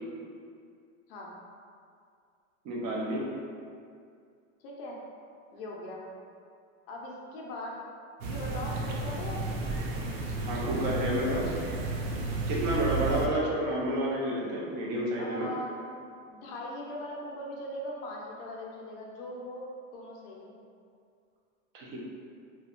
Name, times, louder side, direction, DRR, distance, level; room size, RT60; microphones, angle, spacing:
voice 1, 2.6-3.2 10.4-11.5 12.5-15.5 21.7-22.0, right 1 dB, 40° right, -4 dB, 0.5 m, -30 dB
voice 2, 4.6-5.0 5.5-6.0 6.9-7.9 8.2-9.5 12.8-13.1 15.2-15.9 16.3-20.5, left 1 dB, 45° left, -2 dB, 0.5 m, -40 dB
sound 1, 8.2-13.3, right 3 dB, 85° right, 0.5 m, -32 dB
2.7 x 2.2 x 2.4 m, 2.3 s
supercardioid pair, 155°, 40 cm